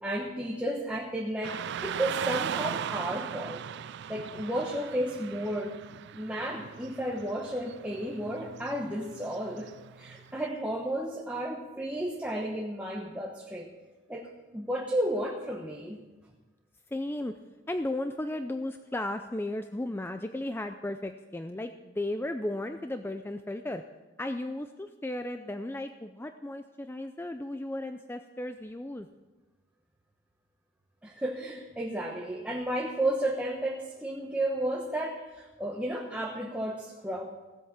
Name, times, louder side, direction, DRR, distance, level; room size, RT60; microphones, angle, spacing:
voice 1, 0.0-3.6 4.1-5.7 6.1-13.7 14.1-16.0 31.0-37.3, right 1 dB, 5° right, -1 dB, 1.1 m, -33 dB
Car passing by / Traffic noise roadway noise, 1.4-10.5, right 8 dB, 55° right, 0.3 m, -38 dB
voice 2, 16.9-17.3 17.7-23.8 24.2-29.1, left 1 dB, 10° left, 8 dB, 0.4 m, -35 dB
16.5 x 8.2 x 7.3 m, 1.2 s
head